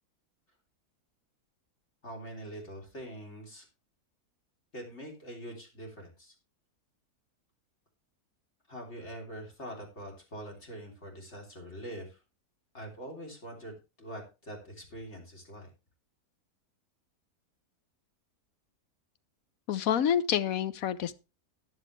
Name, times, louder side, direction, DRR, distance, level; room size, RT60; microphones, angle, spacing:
voice 1, 2.0-3.7 4.7-6.3 8.7-12.2 12.7-15.7, right 1 dB, 45° left, 3.7 m, -44 dB
voice 2, 19.7-21.1, left 9 dB, 70° left, 1.2 m, -28 dB
14.0 x 10.0 x 3.3 m
omnidirectional pair, 1.6 m